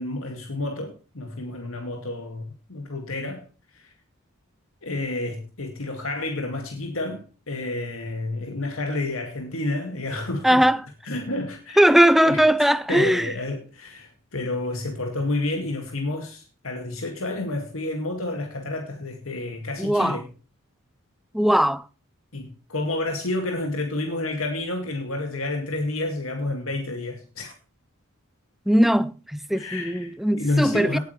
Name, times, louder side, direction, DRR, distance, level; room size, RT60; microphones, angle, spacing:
voice 1, 0.0-3.4 3.7-3.9 4.8-10.6 11.0-11.9 12.3-20.3 22.3-27.5 29.5-31.0, left 2 dB, 75° left, 2.3 m, -30 dB
voice 2, 10.4-10.8 11.8-13.3 19.8-20.2 21.3-21.8 28.7-31.0, right 1 dB, ahead, 0.5 m, -19 dB
18.5 x 9.0 x 3.3 m
head